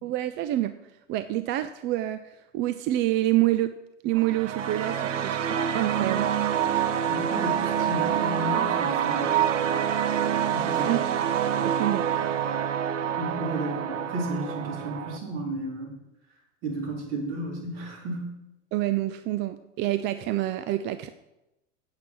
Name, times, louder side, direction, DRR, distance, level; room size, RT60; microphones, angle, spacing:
voice 1, 0.0-0.7 1.1-3.7 4.0-6.3 10.9-11.2 11.5-12.0 18.7-21.1, right 15 dB, 30° right, 11 dB, 0.4 m, -27 dB
sound 1, 4.1-15.2, right 9 dB, 75° right, 0.9 m, -26 dB
voice 2, 7.1-9.3 10.5-10.9 13.2-15.9 16.6-18.3, right 1 dB, 55° right, -1 dB, 4.2 m, -33 dB
8.6 x 7.5 x 6.2 m, 0.93 s
hypercardioid pair, 105°, 37 cm